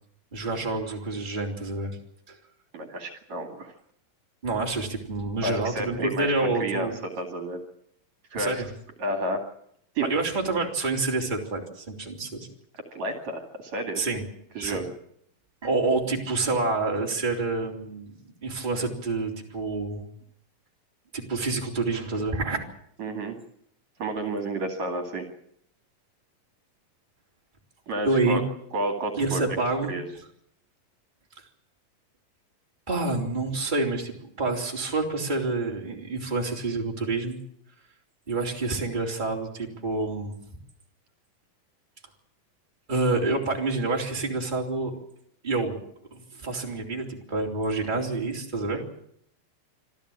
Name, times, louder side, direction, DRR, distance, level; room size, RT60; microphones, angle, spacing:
voice 1, 0.3-2.0 2.3-2.4 4.4-7.0 8.3-8.7 10.1-12.5 14.0-14.2 14.6-14.8 15.6-18.1 18.4-20.1 21.1-22.6 28.0-28.4 29.1-29.9 32.9-37.4 38.3-40.3 42.9-45.0 45.4-45.8 46.1-48.8, right 3 dB, 15° right, 0 dB, 3.4 m, -28 dB
voice 2, 2.7-3.7 5.4-6.3 6.6-7.6 8.3-8.6 9.0-9.4 9.9-10.0 12.9-14.0 14.5-14.8 23.0-23.4 24.0-25.3 27.9-28.4 28.7-29.4 29.9-30.0 48.7-48.9, right 1 dB, 55° right, 5 dB, 3.3 m, -31 dB
26.0 x 14.5 x 8.8 m, 0.71 s
omnidirectional pair, 4.0 m